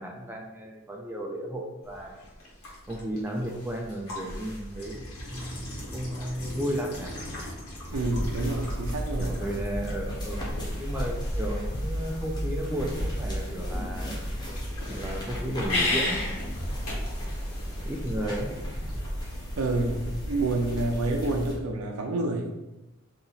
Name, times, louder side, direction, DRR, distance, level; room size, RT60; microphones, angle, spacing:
voice 1, 0.0-2.2 2.9-7.1 9.2-10.5 10.8-14.2 14.8-16.2 17.7-18.5, equal, 10° right, 0 dB, 0.4 m, -34 dB
sound 1, 1.8-18.6, left 2 dB, 80° left, 1.5 m, -37 dB
sound 2, 7.9-21.5, equal, 20° left, 0.8 m, -33 dB
voice 2, 7.9-9.3 19.6-22.5, right 2 dB, 85° right, 2 dB, 0.5 m, -28 dB
4.0 x 2.9 x 4.0 m, 1.0 s
head